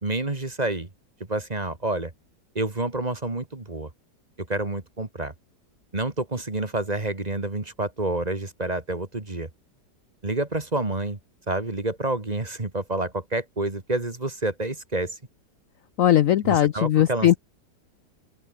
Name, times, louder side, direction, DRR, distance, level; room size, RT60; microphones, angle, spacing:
voice 1, 0.0-0.9 1.3-2.1 2.5-3.9 4.4-5.3 5.9-9.5 10.2-11.2 11.5-15.2 16.4-17.4, right 2 dB, 25° right, 2.1 m, -28 dB
voice 2, 16.0-17.4, left 11 dB, 60° left, 0.9 m, -19 dB
open air
omnidirectional pair, 1.9 m